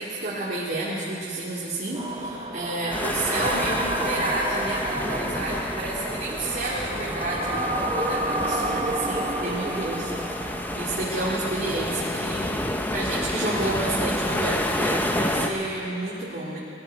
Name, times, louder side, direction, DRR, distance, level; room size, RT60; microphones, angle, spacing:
voice 1, 0.0-12.5 12.9-16.6, right 2 dB, 50° right, -7 dB, 2.2 m, -30 dB
sound 1, 1.9-12.1, right 2 dB, 25° right, 0.8 m, -31 dB
sound 2, 2.9-15.5, left 1 dB, 10° left, 0.7 m, -29 dB
19.5 x 14.5 x 4.5 m, 2.8 s
head